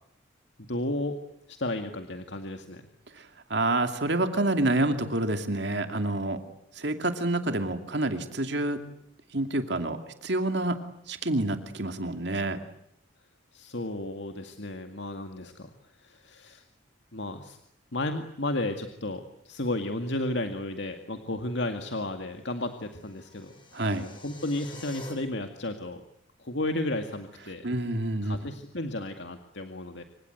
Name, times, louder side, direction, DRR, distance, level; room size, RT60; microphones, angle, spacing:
voice 1, 0.6-1.2 1.5-2.9 13.5-16.6 17.1-17.6 17.9-23.5 23.9-26.0 26.4-27.7 28.2-30.0, left 1 dB, 60° left, 6 dB, 2.2 m, -33 dB
voice 2, 3.1-6.4 6.7-8.8 9.3-10.8 11.1-12.6 23.7-24.1 27.6-28.4, right 2 dB, 60° right, 7 dB, 2.6 m, -28 dB
sound 1, 22.6-25.1, left 3 dB, 25° left, 7.7 m, -48 dB
27.0 x 25.5 x 8.0 m, 0.77 s
head